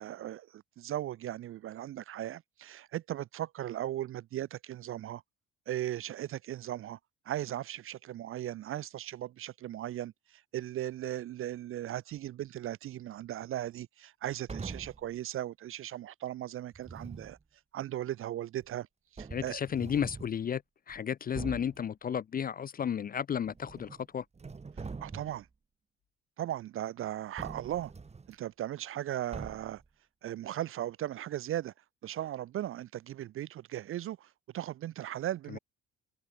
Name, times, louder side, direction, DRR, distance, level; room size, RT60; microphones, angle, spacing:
voice 1, 0.0-5.2 5.7-7.0 7.3-17.4 17.7-18.9 19.1-19.6 24.8-25.5 26.4-27.9 28.3-29.8 30.2-31.7 32.0-35.6, right 12 dB, 35° right, 0.5 m, -37 dB
sound 1, 14.5-15.1 16.7-17.4 18.6-18.7 19.2-20.4 20.9-21.0 21.3-21.8 23.4-24.0 24.3-25.5 27.4-28.3 29.3-29.8, right 4 dB, 15° right, 1.1 m, -43 dB
voice 2, 19.3-20.6 20.9-24.2 35.5-35.6, left 8 dB, 25° left, 0.5 m, -33 dB
open air
figure-of-eight pair, 55°, 37 cm